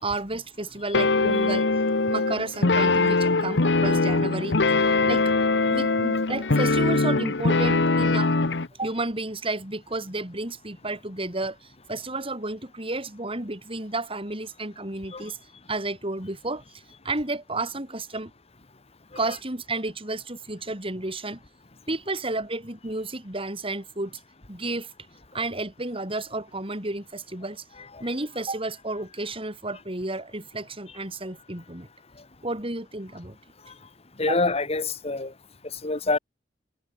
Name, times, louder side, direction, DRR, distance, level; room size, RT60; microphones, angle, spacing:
voice 1, 0.0-1.7 2.1-4.6 5.0-5.3 5.7-8.3 8.8-15.4 15.7-16.6 17.0-18.3 19.2-21.4 21.9-24.2 24.5-24.9 25.3-27.6 28.0-31.9 32.4-33.4 34.3-34.4, right 2 dB, 30° right, 6.0 m, -31 dB
sound 1, 0.9-8.7, left 3 dB, 85° left, 1.1 m, -22 dB
voice 2, 34.2-35.3 35.8-36.2, left 3 dB, 35° left, 1.8 m, -25 dB
head